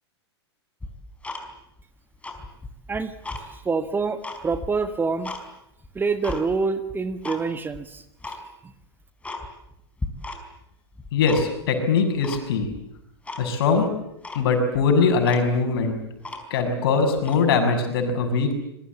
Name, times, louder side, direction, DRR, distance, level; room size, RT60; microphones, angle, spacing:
Tick-tock, 0.8-1.8 2.1-3.5 3.9-5.4 5.8-6.4 6.9-7.4 7.7-7.8 8.2-8.4 8.8-8.9 9.2-9.7 10.0-10.6 10.9-11.7 12.2-12.8 13.2-13.4 13.8-13.9 14.2-14.5 14.9-15.0 15.2-16.7 17.2-17.4, left 2 dB, 10° left, 4.5 m, -36 dB
voice 1, 3.6-5.3 5.9-8.3, right 4 dB, 15° right, 11 dB, 1.6 m, -26 dB
voice 2, 11.1-12.7 13.4-13.9 14.4-15.9 16.5-18.5, left 4 dB, 60° left, 6 dB, 7.1 m, -21 dB
26.0 x 23.0 x 8.5 m, 0.80 s
figure-of-eight pair, 100°, 14 cm